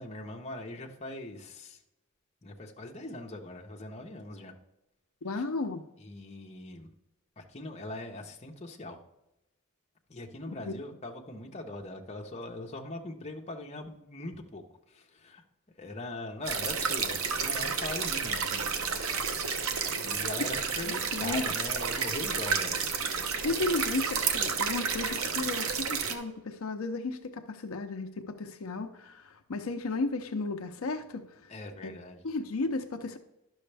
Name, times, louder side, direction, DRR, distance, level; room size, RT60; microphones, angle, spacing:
voice 1, 0.0-1.8 2.4-4.5 5.3-5.4 6.0-6.9 7.4-9.0 10.1-15.4 15.8-19.2 19.9-22.8 31.5-32.2, left 2 dB, 30° left, 2 dB, 1.0 m, -41 dB
voice 2, 5.2-5.8 10.5-10.7 20.4-20.5 21.1-21.5 23.4-31.5 31.8-31.9 32.2-33.2, left 3 dB, 75° left, 6 dB, 0.6 m, -34 dB
sound 1, 16.4-26.2, right 6 dB, 80° right, 0.8 m, -31 dB
11.0 x 6.3 x 3.4 m, 0.92 s
head